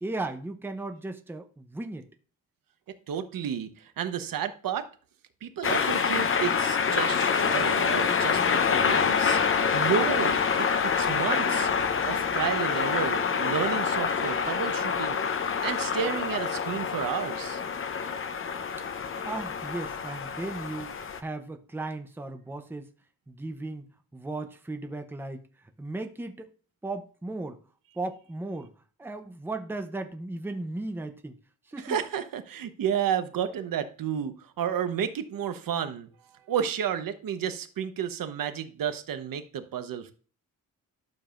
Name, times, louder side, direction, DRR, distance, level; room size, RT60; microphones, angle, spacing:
voice 1, 0.0-2.1 19.2-22.9 23.3-23.9 24.1-25.4 25.8-26.5 26.8-27.6 27.9-28.7 29.0-31.4 31.7-32.0, right 2 dB, 5° right, 0.7 m, -36 dB
voice 2, 2.9-4.9 5.4-9.4 9.7-11.7 12.1-15.2 15.6-17.6 31.8-36.1 36.5-40.1, right 8 dB, 75° right, 1.1 m, -31 dB
sound 1, 5.6-21.2, left 6 dB, 40° left, 0.7 m, -26 dB
12.0 x 6.9 x 2.5 m
wide cardioid pair, 155°, 34 cm